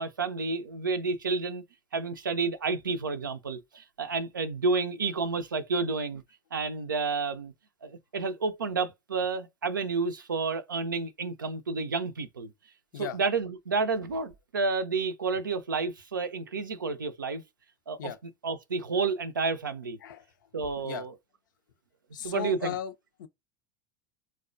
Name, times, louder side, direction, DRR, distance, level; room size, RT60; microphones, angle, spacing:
voice 1, 0.0-1.6 1.9-6.2 6.5-7.5 7.8-12.5 13.0-17.4 17.9-18.1 18.4-20.0 20.5-21.2 22.2-22.8, right 4 dB, 90° right, 0.4 m, -30 dB
voice 2, 22.1-22.9 23.2-23.3, left 10 dB, 75° left, 0.4 m, -36 dB
4.6 x 2.1 x 2.5 m
hypercardioid pair, 80°, 11 cm